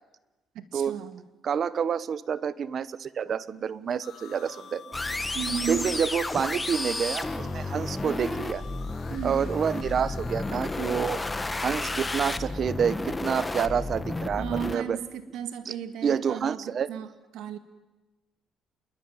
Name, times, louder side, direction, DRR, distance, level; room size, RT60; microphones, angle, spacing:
voice 1, 0.5-1.2 5.3-6.0 9.1-9.5 14.4-17.1 17.3-17.6, right 9 dB, 85° right, 10 dB, 2.2 m, -34 dB
voice 2, 1.4-4.8 5.7-8.6 9.2-11.2 11.6-15.0 15.6-15.7 16.0-16.9, right 7 dB, 45° right, 17 dB, 1.1 m, -28 dB
sound 1, 4.0-11.6, left 7 dB, 50° left, 5.8 m, -48 dB
sound 2, 4.9-14.8, left 2 dB, 15° left, 1.6 m, -32 dB
27.5 x 22.0 x 9.6 m, 1.1 s
cardioid pair, 115°, 0 cm